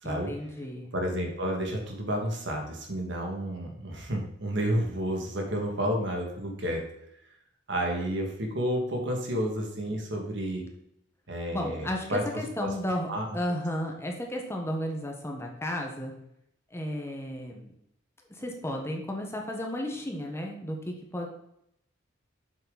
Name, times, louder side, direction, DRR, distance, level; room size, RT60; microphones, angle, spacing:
voice 1, 0.0-0.9 11.5-16.1 16.7-17.7 18.3-21.3, left 1 dB, 15° left, 1 dB, 1.2 m, -33 dB
voice 2, 0.9-6.8 7.7-10.7 11.3-12.7 13.1-13.3, equal, 60° right, 1 dB, 2.1 m, -31 dB
7.8 x 7.1 x 4.0 m, 0.77 s
head